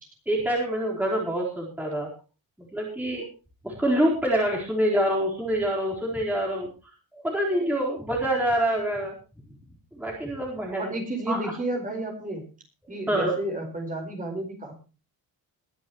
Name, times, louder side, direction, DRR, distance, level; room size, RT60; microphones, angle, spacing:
voice 1, 0.3-2.1 2.7-3.3 3.6-6.7 7.1-9.1 10.0-11.0 11.3-11.4 13.1-13.3, right 1 dB, 5° right, -3 dB, 4.2 m, -26 dB
voice 2, 10.8-12.4 12.9-14.7, right 1 dB, 20° right, 3 dB, 4.7 m, -31 dB
21.5 x 11.0 x 3.1 m, 0.33 s
cardioid pair, 165°, 36 cm